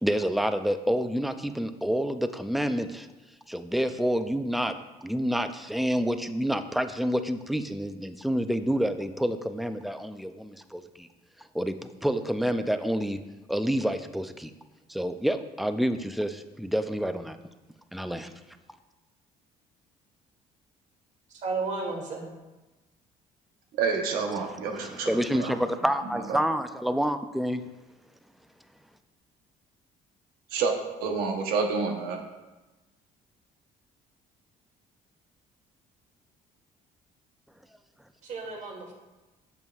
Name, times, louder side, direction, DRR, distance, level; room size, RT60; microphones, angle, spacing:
voice 1, 0.0-3.1 3.5-4.7 5.0-11.1 11.4-13.2 13.5-14.5 14.9-17.4 17.9-18.3 24.5-27.6, equal, ahead, 9 dB, 0.3 m, -28 dB
voice 2, 21.3-22.3 38.2-38.9, right 3 dB, 55° right, 2 dB, 1.5 m, -33 dB
voice 3, 23.8-25.1 30.5-32.2, right 5 dB, 85° right, 3 dB, 1.0 m, -28 dB
8.0 x 7.0 x 2.4 m, 1.1 s
cardioid pair, 130°, 15 cm